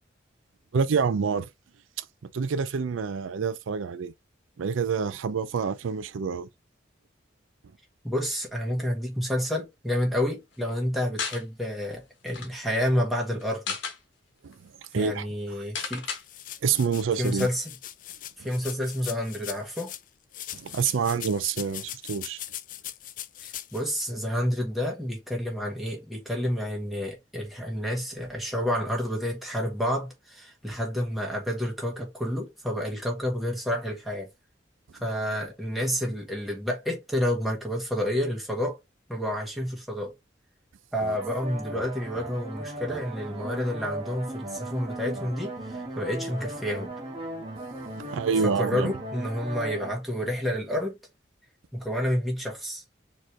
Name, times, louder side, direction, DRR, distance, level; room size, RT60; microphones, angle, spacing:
voice 1, 0.7-1.5 2.0-2.1 2.3-4.1 4.6-6.5 14.4-14.6 14.9-15.3 15.6-15.7 16.6-17.5 20.5-22.4 47.9-48.9, right 6 dB, 85° right, 0.4 m, -27 dB
voice 2, 8.0-13.6 14.9-16.0 17.2-17.7 18.4-19.9 23.4-34.3 35.0-38.8 39.1-40.1 40.9-46.9 48.4-51.0 51.7-52.8, equal, ahead, 1.4 m, -29 dB
sound 1, 11.2-11.4 11.9-12.0 12.2-12.5 13.4-14.0 14.5-14.6 14.8-15.0 15.7-16.2, left 6 dB, 70° left, 1.2 m, -33 dB
sound 2, 16.2-20.0 20.3-23.8, left 12 dB, 45° left, 0.4 m, -40 dB
sound 3, 41.0-49.9, right 1 dB, 30° right, 1.4 m, -37 dB
4.3 x 3.0 x 3.2 m
head